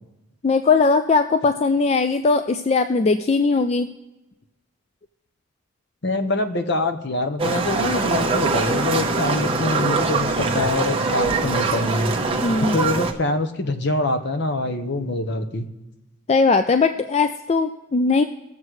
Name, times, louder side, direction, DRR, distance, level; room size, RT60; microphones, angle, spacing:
voice 1, 0.4-3.9 12.4-12.8 16.3-18.2, left 4 dB, 30° left, 8 dB, 0.3 m, -19 dB
voice 2, 6.0-12.1 12.6-15.7, left 2 dB, 55° left, 8 dB, 1.0 m, -24 dB
Livestock farm animals working animals, 7.4-13.1, right 3 dB, 25° right, 1.0 m, -23 dB
20.0 x 7.4 x 3.2 m, 1.0 s
head